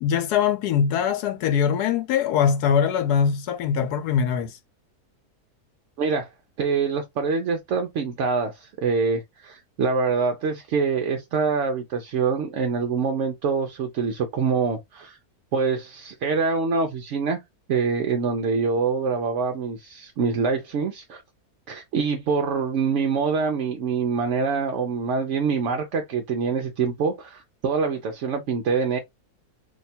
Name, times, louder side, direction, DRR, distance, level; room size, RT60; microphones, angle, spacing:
voice 1, 0.0-4.6, left 7 dB, 90° left, 1.2 m, -22 dB
voice 2, 6.0-6.3 6.6-15.2 15.5-17.4 17.7-21.2 21.7-29.0, right 5 dB, 65° right, 0.8 m, -25 dB
2.9 x 2.3 x 4.0 m
omnidirectional pair, 1.6 m